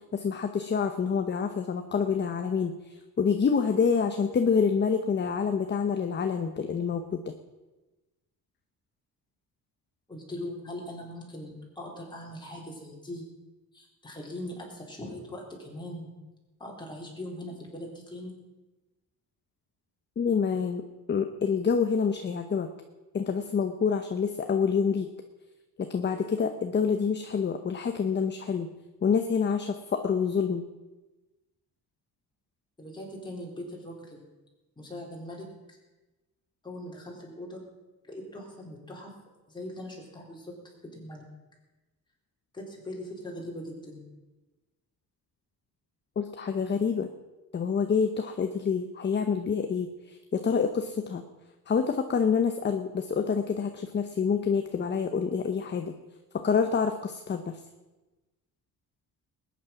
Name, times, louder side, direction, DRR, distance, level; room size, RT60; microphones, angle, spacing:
voice 1, 0.1-7.3 20.2-20.8 21.1-22.7 23.1-25.1 25.8-28.7 29.0-30.6 46.2-47.1 47.5-51.2 51.7-55.9 56.3-57.6, left 6 dB, 30° left, 7 dB, 0.8 m, -27 dB
voice 2, 10.1-13.3 13.7-16.1 16.6-18.4 32.8-34.3 34.8-35.8 36.6-37.6 38.0-39.1 39.5-40.5 40.9-41.2 42.5-44.0, left 1 dB, 10° left, -2 dB, 4.0 m, -40 dB
20.0 x 9.7 x 5.9 m, 1.1 s
cardioid pair, 155°, 37 cm